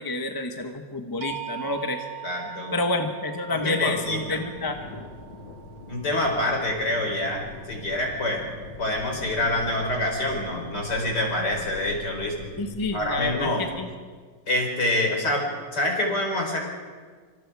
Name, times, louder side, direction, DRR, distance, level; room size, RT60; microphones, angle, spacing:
voice 1, 0.0-2.0 2.7-4.9 12.6-13.9, left 2 dB, 15° left, 4 dB, 1.1 m, -29 dB
sound 1, 1.2-7.2, right 13 dB, 75° right, 2.1 m, -41 dB
voice 2, 2.2-2.8 3.5-4.5 5.9-8.4 8.8-12.3 12.9-13.7 14.5-16.6, left 1 dB, 50° left, 1 dB, 5.2 m, -26 dB
sound 2, 3.5-13.5, left 2 dB, 70° left, 2.9 m, -42 dB
26.5 x 25.5 x 4.9 m, 1.6 s
omnidirectional pair, 2.4 m